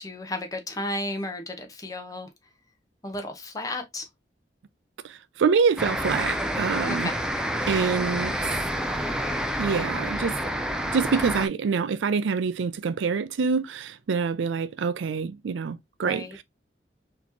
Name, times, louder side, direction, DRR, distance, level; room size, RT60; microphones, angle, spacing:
voice 1, 0.0-2.3 3.0-4.1 6.8-7.2 16.0-16.4, left 1 dB, 20° left, 0.8 m, -33 dB
voice 2, 5.0-7.1 7.7-8.4 9.6-10.4 10.9-16.4, right 5 dB, 80° right, 0.4 m, -26 dB
sound 1, 5.8-11.5, equal, 5° right, 0.4 m, -28 dB
4.2 x 2.9 x 2.7 m
head